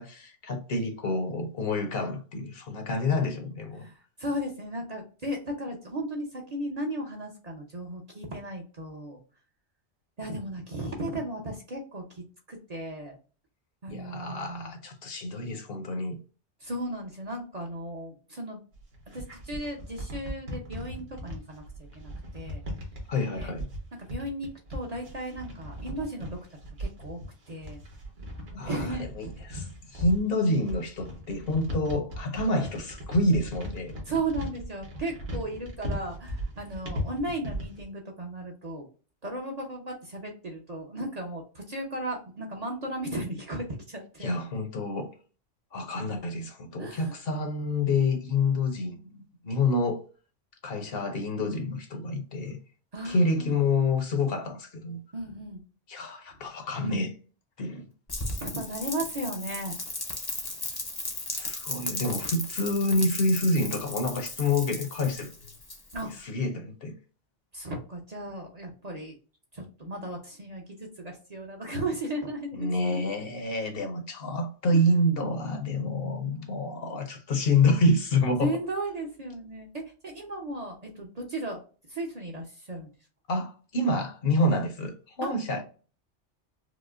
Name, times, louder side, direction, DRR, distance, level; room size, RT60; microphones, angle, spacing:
voice 1, 0.0-3.8 13.9-16.2 23.1-23.7 28.5-28.9 29.2-33.9 44.2-45.1 45.7-50.0 50.6-52.6 53.0-55.0 55.9-57.1 57.6-57.9 61.3-65.3 66.2-66.9 72.6-78.5 83.3-85.6, left 2 dB, 60° left, 0.8 m, -28 dB
voice 2, 3.8-9.2 10.2-13.2 13.8-14.7 16.6-18.6 19.1-22.6 23.2-23.5 23.9-26.4 26.8-27.2 27.5-27.8 28.6-29.2 34.1-38.9 39.2-44.3 46.8-47.2 52.9-53.6 55.1-55.6 58.4-59.8 65.9-66.2 67.5-69.1 69.5-73.0 74.7-74.8 78.4-81.6 81.9-82.9 85.2-85.3, right 1 dB, 40° right, 0.7 m, -35 dB
sound 1, 18.7-37.8, equal, 60° right, 1.3 m, -38 dB
Rain, 58.1-66.2, left 2 dB, 25° left, 0.5 m, -36 dB
4.9 x 2.1 x 2.4 m
omnidirectional pair, 1.2 m